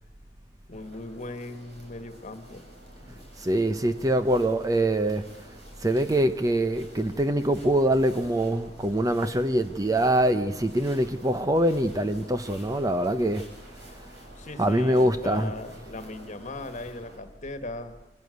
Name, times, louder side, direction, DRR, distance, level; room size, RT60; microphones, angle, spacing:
voice 1, 0.7-2.6 3.0-3.3 3.7-3.8 14.3-18.0, left 2 dB, 40° left, 1.6 m, -39 dB
sound 1, 0.7-17.2, right 1 dB, 65° right, 7.8 m, -50 dB
voice 2, 3.4-5.2 5.8-13.4 14.6-15.5, right 1 dB, 20° right, 0.7 m, -24 dB
24.5 x 16.0 x 7.9 m
head